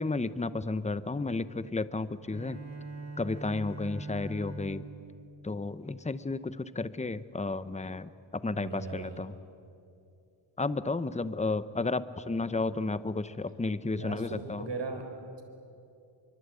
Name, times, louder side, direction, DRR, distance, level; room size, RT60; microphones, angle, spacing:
voice 1, 0.0-2.6 3.2-4.9 5.4-9.3 10.6-14.7, left 3 dB, 15° left, 14 dB, 0.8 m, -32 dB
Bowed string instrument, 2.2-6.5, right 3 dB, 35° right, 5.3 m, -43 dB
voice 2, 8.5-9.2 14.0-15.0, right 3 dB, 60° right, 5 dB, 4.2 m, -37 dB
25.5 x 24.0 x 8.4 m, 2.6 s
wide cardioid pair, 100°, 48 cm